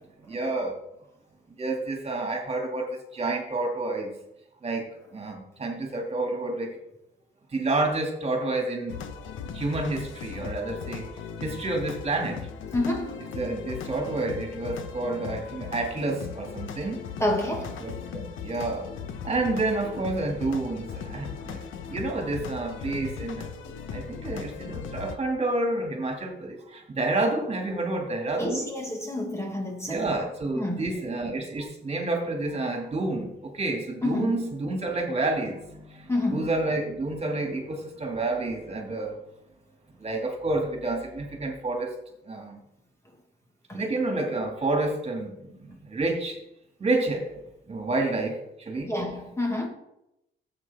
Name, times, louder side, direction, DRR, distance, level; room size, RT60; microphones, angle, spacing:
voice 1, 0.2-0.8 1.6-4.1 4.6-6.8 7.5-9.0 9.5-11.1 11.4-12.5 13.3-17.1 17.8-18.9 19.2-21.6 21.9-23.5 23.9-28.6 29.9-39.2 40.0-41.9 42.3-42.6 43.7-46.4 46.8-48.9, right 2 dB, 30° right, 2.5 m, -29 dB
sound 1, 8.9-25.2, left 6 dB, 80° left, 1.1 m, -38 dB
voice 2, 12.7-13.3 17.2-17.9 28.3-30.1 30.6-30.9 34.0-34.4 36.1-36.5 43.7-43.8 48.9-49.7, left 1 dB, 15° left, 1.7 m, -29 dB
12.5 x 8.0 x 3.6 m
cardioid pair, 90°, 20 cm